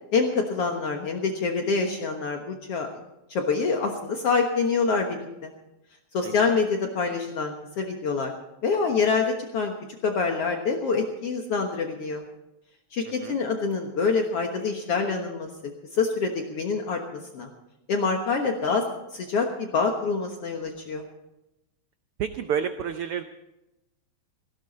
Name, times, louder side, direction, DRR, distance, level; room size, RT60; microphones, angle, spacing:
voice 1, 0.1-2.9 3.3-5.5 6.1-8.3 8.6-9.7 10.0-12.2 12.9-15.5 15.9-17.5 17.9-18.9 19.1-21.0, left 4 dB, 60° left, 3 dB, 2.2 m, -26 dB
voice 2, 22.2-23.3, right 8 dB, 70° right, 8 dB, 1.3 m, -29 dB
18.0 x 17.0 x 4.1 m, 0.92 s
omnidirectional pair, 3.3 m